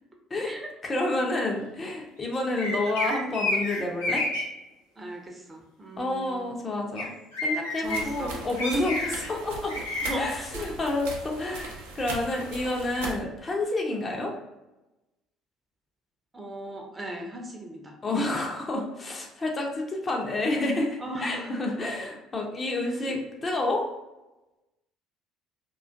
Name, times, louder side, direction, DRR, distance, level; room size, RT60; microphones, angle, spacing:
voice 1, 0.8-4.2 6.0-7.1 7.4-9.8 10.1-14.3 18.0-23.9, left 2 dB, 30° left, 0 dB, 0.5 m, -29 dB
sound 1, 2.6-4.4 7.0-7.1 7.3-8.0 8.6-9.3 9.7-10.1, left 2 dB, 80° left, 0.7 m, -29 dB
voice 2, 5.0-6.5 7.8-8.4 10.0-10.5 16.3-18.0 21.0-21.6 22.9-23.2, right 1 dB, 20° right, 1 dB, 0.5 m, -38 dB
sound 2, 7.8-13.1, right 3 dB, 75° right, 0.4 m, -39 dB
2.4 x 2.2 x 2.4 m, 1.0 s
figure-of-eight pair, 55°, 0 cm